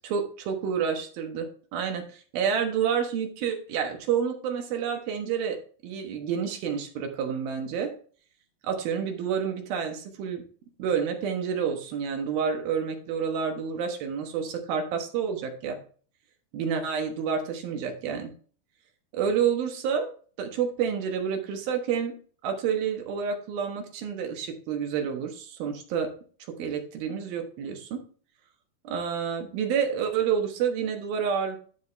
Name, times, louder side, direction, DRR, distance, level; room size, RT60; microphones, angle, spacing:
voice 1, 0.0-5.6 5.8-7.9 8.6-10.4 10.8-15.8 16.5-18.3 19.1-20.1 20.4-22.1 22.4-26.1 26.6-28.0 28.8-31.6, right 7 dB, 70° right, 4 dB, 3.0 m, -29 dB
12.0 x 5.0 x 3.3 m, 0.43 s
omnidirectional pair, 4.6 m